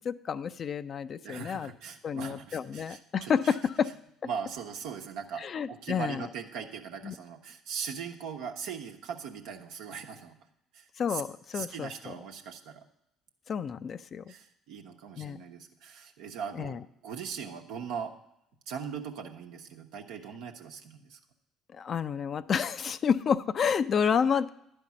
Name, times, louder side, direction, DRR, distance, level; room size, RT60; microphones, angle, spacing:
voice 1, 0.0-1.7 2.0-3.9 5.4-6.3 7.0-7.2 11.0-12.1 13.5-14.3 15.2-15.4 16.5-16.8 21.7-24.5, left 7 dB, 45° left, 13 dB, 0.5 m, -30 dB
voice 2, 1.2-3.6 4.2-10.4 10.7-11.2 11.5-12.8 14.3-18.1 18.7-21.2, right 7 dB, 70° right, 4 dB, 1.0 m, -40 dB
11.0 x 5.3 x 8.4 m, 0.78 s
hypercardioid pair, 55°, 0 cm